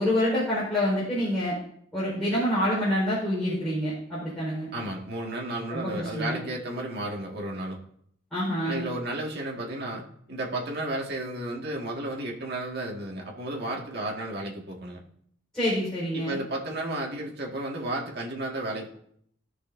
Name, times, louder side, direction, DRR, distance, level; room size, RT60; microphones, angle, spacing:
voice 1, 0.0-1.6 1.9-4.7 5.7-6.4 8.3-8.8 15.5-16.4, equal, 5° left, -11 dB, 4.5 m, -27 dB
voice 2, 4.7-7.8 8.6-15.0 16.1-19.0, right 1 dB, 60° right, -1 dB, 2.0 m, -33 dB
17.5 x 6.6 x 2.7 m, 0.68 s
head